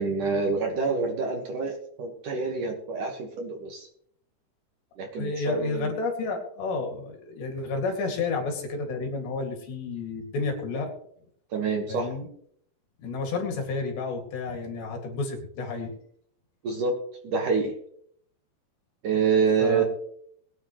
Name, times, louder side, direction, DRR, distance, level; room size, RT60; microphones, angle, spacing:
voice 1, 0.0-3.9 5.0-6.0 11.5-12.1 16.6-16.9 17.2-17.7 19.0-19.8, right 5 dB, 55° right, 2 dB, 2.6 m, -27 dB
voice 2, 5.2-10.9 11.9-12.3 13.0-15.9 19.6-19.8, left 3 dB, 70° left, 2 dB, 4.6 m, -31 dB
22.0 x 10.0 x 3.2 m, 0.66 s
omnidirectional pair, 5.2 m